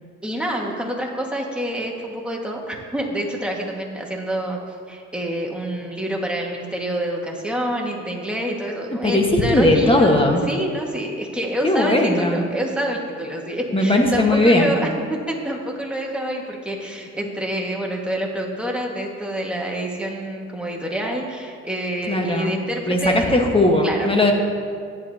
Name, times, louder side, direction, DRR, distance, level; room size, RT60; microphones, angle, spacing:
voice 1, 0.2-14.9 15.3-23.5 23.8-24.3, right 1 dB, 5° right, -1 dB, 1.7 m, -27 dB
voice 2, 9.0-10.4 11.6-12.4 13.7-14.8 22.1-22.5 22.9-24.3, left 1 dB, 20° left, 2 dB, 1.3 m, -18 dB
14.0 x 10.0 x 2.8 m, 2.2 s
cardioid pair, 90°, 30 cm